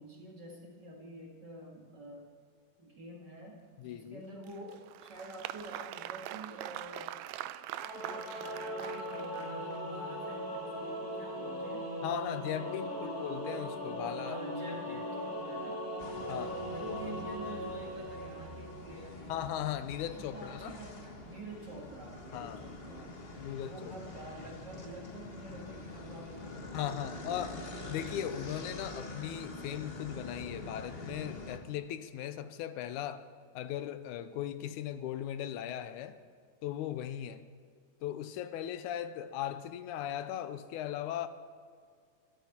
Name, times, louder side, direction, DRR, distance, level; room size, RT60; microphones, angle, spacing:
voice 1, 0.0-2.3 2.8-7.1 7.9-11.9 12.2-12.3 12.6-13.3 14.2-15.9 16.7-19.5 20.0-23.2 23.6-28.1, right 1 dB, 40° right, 2.1 m, -48 dB
voice 2, 3.8-4.3 12.0-14.4 14.7-15.0 16.3-16.7 19.3-20.8 22.3-22.7 23.3-23.9 26.7-33.3 33.5-36.2 36.6-37.4 38.0-41.3, left 10 dB, 90° left, 2.2 m, -38 dB
Applause, 4.4-9.8, right 13 dB, 80° right, 1.7 m, -43 dB
Singing / Musical instrument, 7.7-19.0, equal, 30° left, 2.9 m, -39 dB
sound 1, 16.0-31.6, left 2 dB, 60° left, 0.6 m, -45 dB
23.0 x 13.0 x 4.4 m
omnidirectional pair, 3.5 m